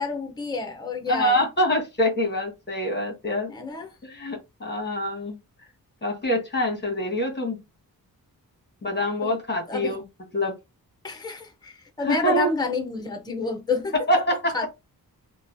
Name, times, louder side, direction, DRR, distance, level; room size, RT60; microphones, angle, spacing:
voice 1, 0.0-1.5 3.5-3.9 9.2-9.4 9.7-10.0 11.0-13.9 14.5-14.7, left 3 dB, 10° left, 0.6 m, -29 dB
voice 2, 1.1-3.5 4.0-5.4 6.0-7.6 8.8-10.0 10.3-10.5 12.0-12.5 13.9-14.5, left 1 dB, 30° left, 1.2 m, -25 dB
3.0 x 2.2 x 2.6 m
wide cardioid pair, 125°, 36 cm